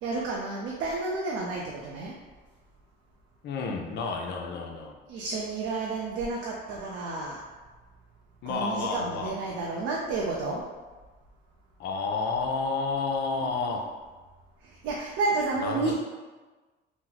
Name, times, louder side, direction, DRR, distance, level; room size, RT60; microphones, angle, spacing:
voice 1, 0.0-2.2 5.1-7.5 8.4-10.6 14.8-15.9, right 3 dB, 90° right, -3 dB, 0.5 m, -31 dB
voice 2, 3.4-5.0 8.4-9.4 11.8-13.9 15.6-15.9, left 4 dB, 60° left, 1 dB, 0.5 m, -30 dB
2.9 x 2.1 x 3.8 m, 1.3 s
cardioid pair, 105°, 20 cm